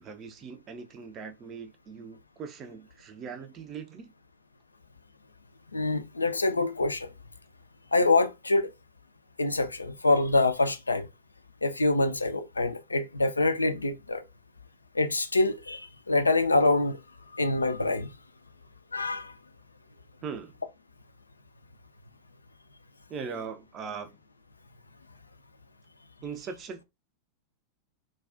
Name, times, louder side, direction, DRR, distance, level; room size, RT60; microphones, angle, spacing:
voice 1, 0.0-4.1 20.2-20.6 23.1-24.2 26.2-26.8, right 6 dB, 30° right, 0.4 m, -40 dB
voice 2, 5.7-7.1 7.9-8.7 9.4-11.1 11.6-14.2 15.0-17.0 17.3-18.1 18.9-19.3, left 2 dB, 80° left, 0.3 m, -25 dB
2.3 x 2.2 x 2.4 m
figure-of-eight pair, 90°, 0 cm